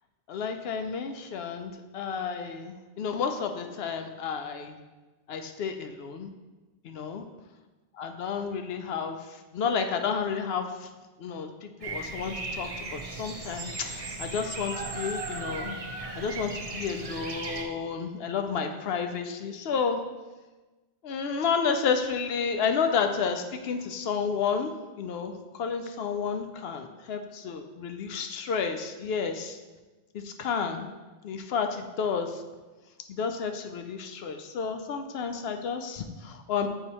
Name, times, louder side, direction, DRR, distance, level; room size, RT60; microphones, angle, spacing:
voice 1, 0.3-4.8 5.3-6.3 6.8-7.2 7.9-10.9 11.2-15.8 16.2-20.0 21.0-24.7 25.0-29.6 30.1-30.9 31.2-32.4 33.1-36.7, left 6 dB, 65° left, 6 dB, 0.7 m, -31 dB
Bird vocalization bird call bird song, 11.8-17.6, right 3 dB, 40° right, 0.6 m, -37 dB
8.0 x 2.9 x 4.1 m, 1.2 s
omnidirectional pair, 1.2 m